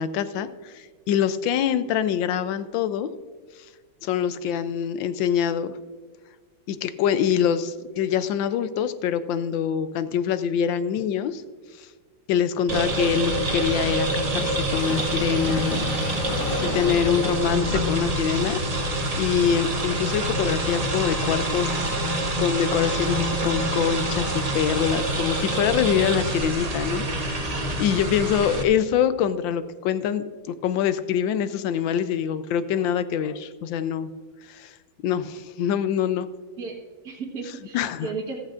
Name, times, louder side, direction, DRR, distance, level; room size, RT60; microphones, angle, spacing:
voice 1, 0.0-3.1 4.0-5.8 6.7-11.4 11.8-11.9 12.3-16.2 16.5-18.6 19.2-21.7 22.0-27.5 27.8-34.1 34.5-34.7 35.0-36.3 37.7-38.1, left 8 dB, 80° left, 12 dB, 1.3 m, -25 dB
sound 1, 12.7-28.6, right 1 dB, 30° right, 0.8 m, -26 dB
Train, 14.7-22.2 22.4-22.5, left 5 dB, 60° left, 0.9 m, -39 dB
voice 2, 37.0-38.4, right 4 dB, 50° right, -4 dB, 1.7 m, -34 dB
14.5 x 14.0 x 2.5 m, 1.5 s
omnidirectional pair, 2.1 m